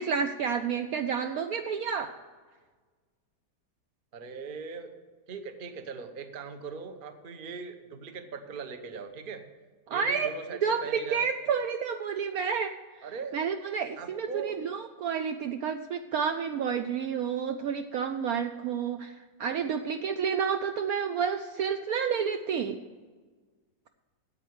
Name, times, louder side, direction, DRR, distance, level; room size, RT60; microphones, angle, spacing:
voice 1, 0.0-2.1 9.9-10.3 10.6-13.1 13.3-22.8, right 6 dB, 70° right, 7 dB, 0.9 m, -30 dB
voice 2, 4.1-4.9 5.3-9.5 9.9-11.2 13.0-13.4 14.0-14.6, right 5 dB, 40° right, 8 dB, 0.8 m, -40 dB
9.2 x 8.2 x 8.0 m, 1.4 s
omnidirectional pair, 1.9 m